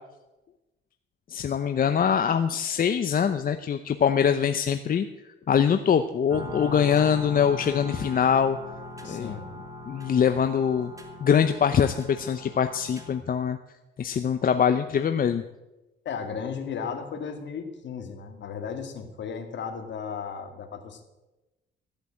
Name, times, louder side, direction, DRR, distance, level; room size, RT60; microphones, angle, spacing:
voice 1, 1.3-5.0 5.5-8.6 9.0-9.3 9.9-10.9 11.2-13.6 14.0-15.4, left 7 dB, 45° left, 9 dB, 0.7 m, -23 dB
sound 1, 6.3-13.2, left 1 dB, 15° right, 2.5 m, -40 dB
voice 2, 9.0-9.5 16.1-21.0, left 6 dB, 65° left, 6 dB, 2.1 m, -35 dB
14.0 x 8.1 x 8.5 m, 1.0 s
cardioid pair, 90°, 20 cm